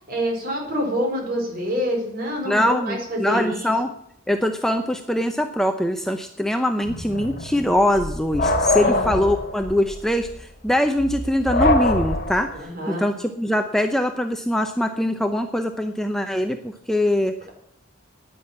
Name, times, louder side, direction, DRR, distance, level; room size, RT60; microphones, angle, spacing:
voice 1, 0.1-3.7 8.8-9.3 12.5-13.0, equal, 45° right, 1 dB, 4.4 m, -27 dB
voice 2, 2.5-3.9 4.3-12.5 12.9-17.4, left 1 dB, ahead, 6 dB, 0.6 m, -22 dB
sound 1, 6.8-12.6, left 2 dB, 45° left, 1.5 m, -24 dB
10.0 x 9.6 x 8.5 m, 0.72 s
head